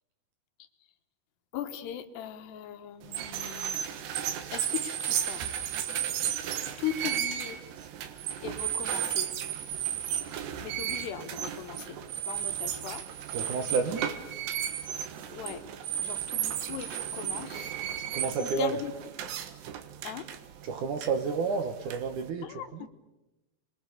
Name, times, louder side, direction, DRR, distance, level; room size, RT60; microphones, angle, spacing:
voice 1, 1.5-4.0 4.5-5.5 6.8-7.6 8.4-9.3 10.6-12.0 12.3-13.0 13.4-13.8 15.3-15.6 16.0-17.7 18.4-18.9 20.0-20.3 22.4-22.9, left 10 dB, 80° left, 8 dB, 3.3 m, -39 dB
sound 1, 3.0-22.3, right 10 dB, 80° right, 3.6 m, -34 dB
voice 2, 13.3-14.1 18.1-18.7 20.6-22.5 22.7-22.9, right 5 dB, 60° right, 7 dB, 2.4 m, -30 dB
30.0 x 22.5 x 6.8 m, 1.0 s
omnidirectional pair, 4.8 m